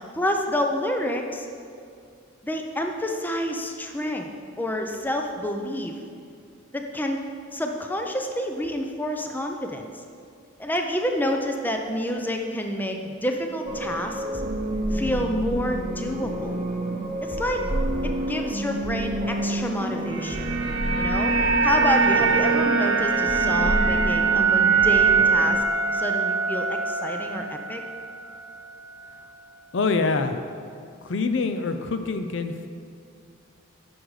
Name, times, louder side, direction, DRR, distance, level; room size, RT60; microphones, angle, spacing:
voice 1, 0.0-1.5 2.4-4.3 4.6-6.0 6.7-7.2 7.5-9.9 10.6-14.2 14.9-16.6 17.2-17.6 18.0-20.5 21.0-21.3 21.6-25.6 25.9-27.8, equal, 10° left, 3 dB, 0.5 m, -28 dB
sound 1, 13.6-25.6, right 1 dB, 35° right, 0.9 m, -28 dB
sound 2, 19.8-28.1 28.4-28.6, right 5 dB, 70° right, 1.0 m, -23 dB
voice 2, 29.7-30.4 31.0-32.7, left 4 dB, 65° left, 8 dB, 0.5 m, -25 dB
10.0 x 6.3 x 4.8 m, 2.3 s
head